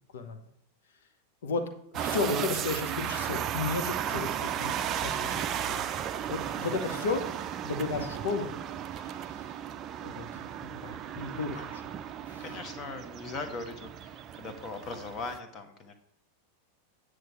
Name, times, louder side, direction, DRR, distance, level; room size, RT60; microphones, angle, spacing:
voice 1, 1.9-5.8 6.3-7.2 7.6-8.5 8.9-9.5 10.0-11.8 12.3-12.4, left 3 dB, 60° left, 7 dB, 1.1 m, -34 dB
sound 1, 1.9-15.4, right 10 dB, 30° right, 0.5 m, -35 dB
voice 2, 11.3-11.7 12.4-15.9, left 3 dB, 30° left, 6 dB, 1.3 m, -40 dB
9.4 x 6.4 x 4.6 m, 0.72 s
figure-of-eight pair, 90°, 0 cm